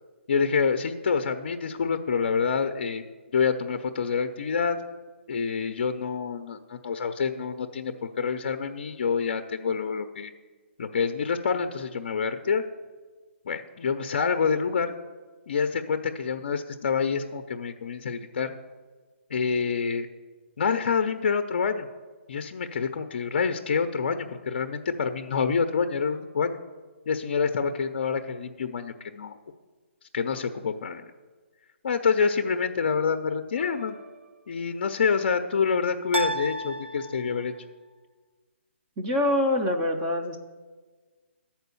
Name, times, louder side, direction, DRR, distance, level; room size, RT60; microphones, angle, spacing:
voice 1, 0.3-3.0 3.3-4.8 5.3-10.3 10.8-12.6 13.5-14.9 15.5-18.5 19.3-20.1 20.6-21.9 22.3-26.6 27.1-29.3 30.1-31.0 31.8-34.0 34.5-37.5, left 5 dB, 45° left, 7 dB, 0.5 m, -27 dB
sound 1, 33.5-34.3 36.1-37.6, right 1 dB, 85° right, 0.5 m, -33 dB
voice 2, 39.0-40.4, left 1 dB, 15° right, 3 dB, 0.4 m, -25 dB
11.5 x 4.4 x 6.8 m, 1.4 s
hypercardioid pair, 170°, 7 cm